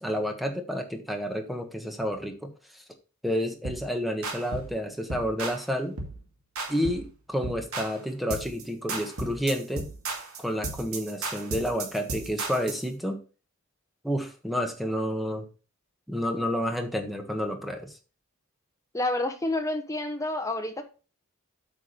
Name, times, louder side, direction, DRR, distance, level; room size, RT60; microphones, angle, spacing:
voice 1, 0.0-2.5 3.2-5.9 6.7-9.9 10.4-13.2 14.0-15.4 16.1-17.9, equal, ahead, 4 dB, 1.3 m, -30 dB
sound 1, 3.6-3.9 4.2-4.7 5.1-5.6 6.0-6.2 6.6-7.1 7.4-8.0 8.3-8.6 8.9-12.8, right 3 dB, 75° right, 2.3 m, -35 dB
voice 2, 18.9-20.8, left 2 dB, 15° left, 6 dB, 1.0 m, -29 dB
8.6 x 4.9 x 5.1 m, 0.35 s
head